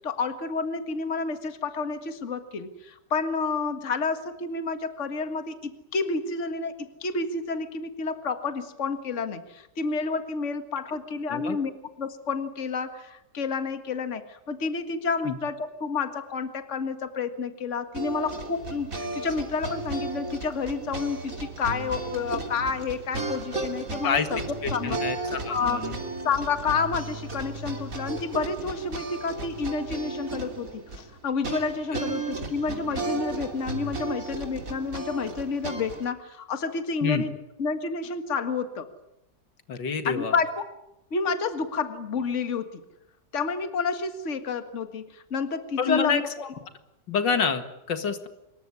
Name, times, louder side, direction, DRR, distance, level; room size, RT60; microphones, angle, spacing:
voice 1, 0.0-24.4 24.7-25.0 25.5-25.8 26.2-37.3 37.6-38.9 40.1-40.7 41.1-42.8 43.3-46.5, left 4 dB, 40° left, 9 dB, 2.0 m, -30 dB
sound 1, 17.9-36.1, right 3 dB, 45° right, 3.4 m, -34 dB
voice 2, 24.6-26.0 37.0-37.2 39.7-40.3 45.8-46.2 47.1-48.3, left 6 dB, 80° left, 9 dB, 2.5 m, -27 dB
25.5 x 22.0 x 9.8 m, 0.86 s
omnidirectional pair, 2.0 m